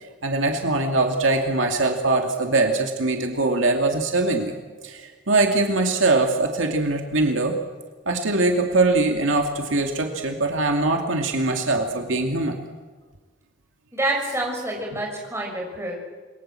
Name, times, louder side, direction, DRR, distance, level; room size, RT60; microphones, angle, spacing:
voice 1, 0.2-4.6 4.8-7.6 8.1-12.6, right 2 dB, 70° right, 3 dB, 2.5 m, -22 dB
voice 2, 13.9-16.0, right 1 dB, 15° right, -1 dB, 6.8 m, -27 dB
27.5 x 22.0 x 7.7 m, 1.4 s
head